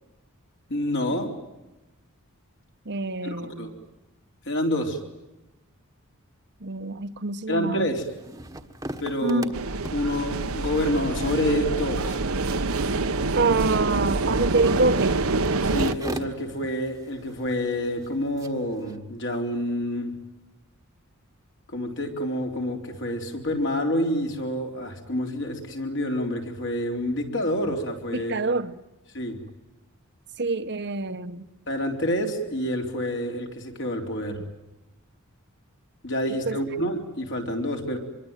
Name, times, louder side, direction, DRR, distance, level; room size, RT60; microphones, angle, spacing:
voice 1, 0.7-1.3 3.2-3.7 4.5-5.0 7.5-8.1 9.0-9.4 9.9-12.2 15.6-20.1 21.7-28.5 29.1-29.4 31.7-34.4 36.0-38.0, equal, 55° left, 4.1 m, -28 dB
voice 2, 2.8-3.7 6.6-7.9 9.2-9.5 13.3-15.2 28.1-28.7 30.4-31.5 36.5-36.6, right 3 dB, 50° right, 1.1 m, -26 dB
sound 1, 7.8-19.0, right 1 dB, 15° right, 1.4 m, -41 dB
sound 2, 9.5-15.9, right 3 dB, 70° right, 1.1 m, -26 dB
26.0 x 23.5 x 9.2 m
head